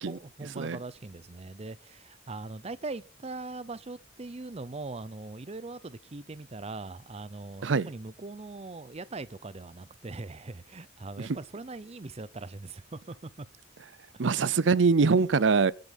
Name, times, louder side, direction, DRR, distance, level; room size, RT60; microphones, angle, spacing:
voice 1, 0.1-13.5 14.1-14.3, right 3 dB, 35° right, 0.6 m, -41 dB
voice 2, 14.2-15.7, right 4 dB, 80° right, 0.6 m, -23 dB
20.0 x 7.8 x 5.4 m
head